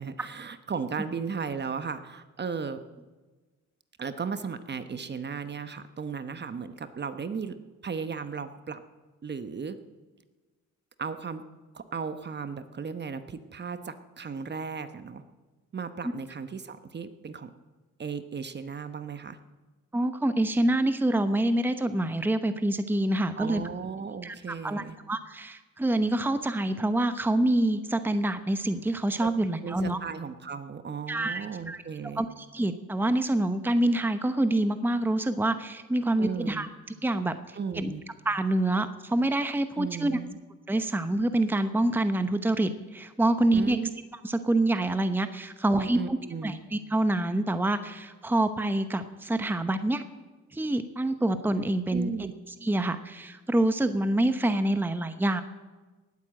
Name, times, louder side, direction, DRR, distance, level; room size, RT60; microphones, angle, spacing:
voice 1, 0.0-2.8 4.0-7.6 7.8-8.8 9.2-9.8 11.0-11.4 11.7-15.2 15.7-17.5 18.0-19.4 23.4-25.0 29.2-29.3 29.6-32.2 36.2-36.7 37.5-38.0 39.8-40.4 43.5-43.9 45.8-46.6 51.9-52.3, right 5 dB, 35° right, 11 dB, 1.1 m, -35 dB
voice 2, 19.9-23.6 24.2-30.0 31.1-31.8 32.2-36.7 37.0-37.9 38.2-40.2 40.7-43.8 44.2-46.2 46.4-50.0 50.5-52.3 52.6-55.4, right 1 dB, 5° right, 10 dB, 0.9 m, -26 dB
18.5 x 9.1 x 7.7 m, 1.3 s
cardioid pair, 90°, 30 cm